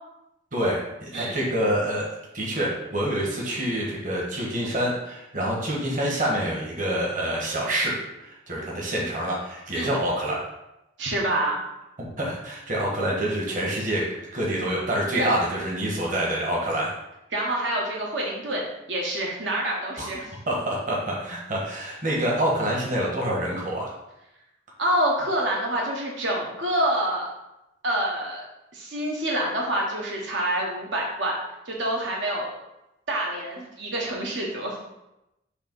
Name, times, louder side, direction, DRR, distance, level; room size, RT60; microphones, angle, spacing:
voice 1, 0.5-2.1 2.3-10.4 12.0-14.0 14.3-16.9 20.0-20.1 20.5-23.9, right 1 dB, 40° right, -3 dB, 1.3 m, -27 dB
voice 2, 11.0-11.6 15.1-15.3 17.3-20.3 24.8-27.3 27.8-28.4 28.7-31.4 31.7-32.5 33.1-34.8, right 1 dB, 75° right, -2 dB, 1.2 m, -27 dB
6.7 x 2.9 x 5.3 m, 0.91 s
head